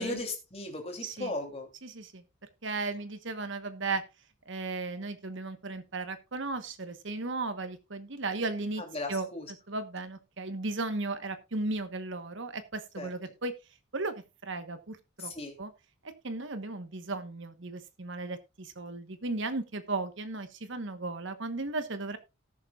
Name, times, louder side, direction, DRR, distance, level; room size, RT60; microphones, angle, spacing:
voice 1, 0.0-1.7 8.8-9.5 13.0-13.1 15.2-15.5, left 2 dB, 30° left, 3 dB, 2.9 m, -36 dB
voice 2, 1.0-1.3 1.8-2.2 2.6-4.0 4.5-8.8 9.1-9.3 9.7-13.5 13.9-15.3 15.6-15.7 16.0-22.2, right 3 dB, 60° right, 10 dB, 1.2 m, -35 dB
18.0 x 7.0 x 2.4 m, 0.26 s
head